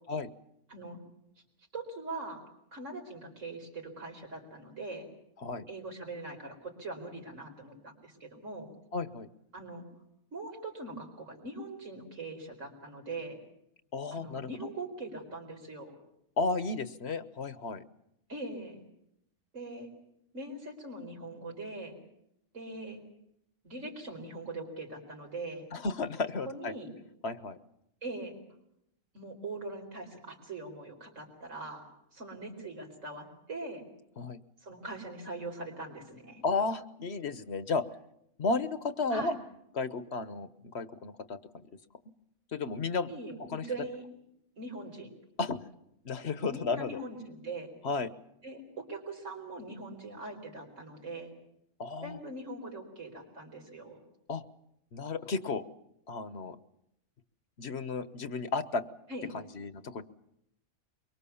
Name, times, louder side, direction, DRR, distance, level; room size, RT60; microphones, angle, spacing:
voice 1, 0.7-1.0 1.7-2.4 2.7-5.1 5.7-8.7 9.5-9.8 10.3-13.4 14.1-15.9 18.3-18.8 19.5-19.9 20.3-21.9 22.5-23.0 23.6-25.7 26.5-26.9 28.0-28.4 29.1-31.8 32.1-33.8 34.6-36.4 39.1-39.3 43.1-44.0 44.6-45.1 46.5-47.7 48.4-51.3 52.0-54.0 59.1-59.3, right 2 dB, 85° right, 2 dB, 4.8 m, -41 dB
voice 2, 8.9-9.3 13.9-14.5 16.4-17.8 25.7-26.7 27.2-27.6 34.2-34.4 36.4-37.8 38.4-39.3 39.7-40.5 40.7-41.6 42.5-43.1 43.5-43.6 45.4-45.6 46.0-47.0 47.8-48.1 51.8-52.2 54.3-54.4 54.9-55.6 56.1-56.6 57.6-58.8 59.3-60.0, left 3 dB, 60° left, 12 dB, 1.3 m, -33 dB
24.0 x 23.5 x 7.1 m, 0.78 s
omnidirectional pair, 1.3 m